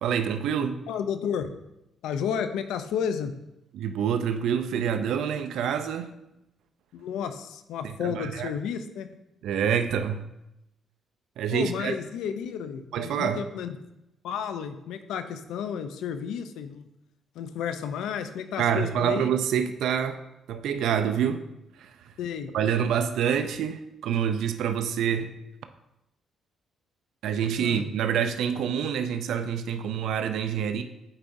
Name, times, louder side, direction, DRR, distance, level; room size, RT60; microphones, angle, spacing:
voice 1, 0.0-0.8 3.7-6.2 7.8-8.5 9.4-10.3 11.4-11.9 12.9-13.4 18.6-20.2 20.5-21.4 21.8-21.9 22.5-25.3 27.2-30.8, right 8 dB, 80° right, 9 dB, 0.4 m, -27 dB
voice 2, 0.9-1.5 2.0-3.3 6.9-9.1 11.5-13.8 14.2-16.9 17.3-19.3 22.2-22.5 27.6-27.9, left 7 dB, 85° left, 9 dB, 0.4 m, -32 dB
8.7 x 4.6 x 2.6 m, 0.88 s
cardioid pair, 90°, 0 cm